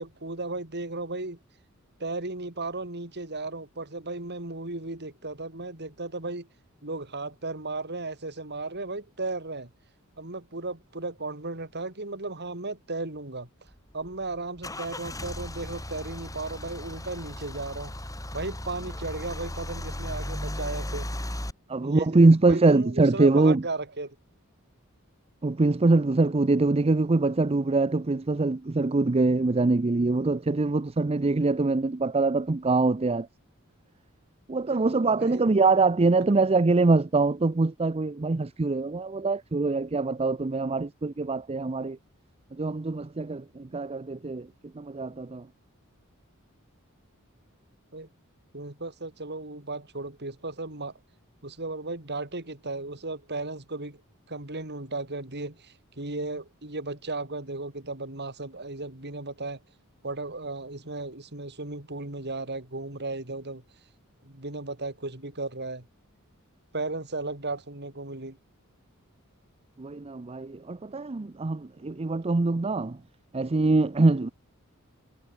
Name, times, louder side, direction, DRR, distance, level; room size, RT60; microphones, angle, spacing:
voice 1, 0.0-1.4 2.0-6.5 6.8-9.7 10.2-13.5 13.9-17.9 18.3-21.1 21.8-24.2 35.2-35.5 47.9-48.1 48.5-50.9 51.4-54.0 54.3-59.6 60.0-63.6 64.2-65.9 66.7-68.4, right 2 dB, 55° right, 4.2 m, -35 dB
Car / Engine starting / Idling, 13.7-21.5, left 1 dB, 15° left, 5.0 m, -36 dB
voice 2, 21.7-23.6 25.4-33.3 34.5-42.0 42.5-44.5 44.7-45.5 69.8-73.0 73.3-74.3, right 3 dB, 30° right, 0.5 m, -23 dB
head